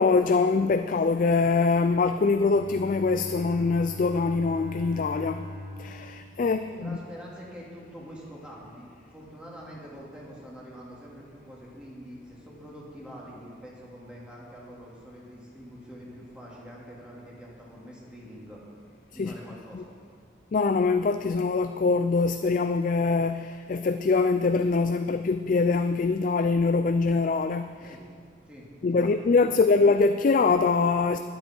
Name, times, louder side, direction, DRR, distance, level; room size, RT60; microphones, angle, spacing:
voice 1, 0.0-5.5 5.8-7.0 19.2-19.3 19.7-19.8 20.5-27.8 28.8-31.2, left 4 dB, 45° left, 8 dB, 0.4 m, -23 dB
Bowed string instrument, 2.4-7.4, left 1 dB, 75° right, 4.3 m, -41 dB
voice 2, 6.4-18.6 19.1-19.9 27.8-28.0 28.5-29.6, equal, 5° right, -5 dB, 2.5 m, -45 dB
22.0 x 8.3 x 4.4 m, 2.1 s
head